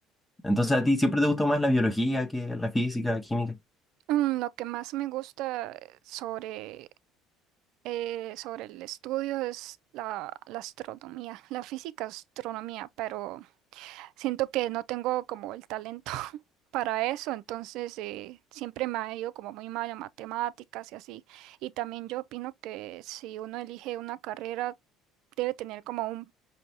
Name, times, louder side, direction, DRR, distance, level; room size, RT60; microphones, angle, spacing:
voice 1, 0.4-3.6, left 1 dB, 10° left, 0.7 m, -25 dB
voice 2, 4.1-6.9 7.8-13.5 13.7-16.4 16.7-24.7 25.4-26.3, right 15 dB, 70° right, 0.3 m, -34 dB
5.1 x 2.7 x 2.7 m
supercardioid pair, 80°, 0 cm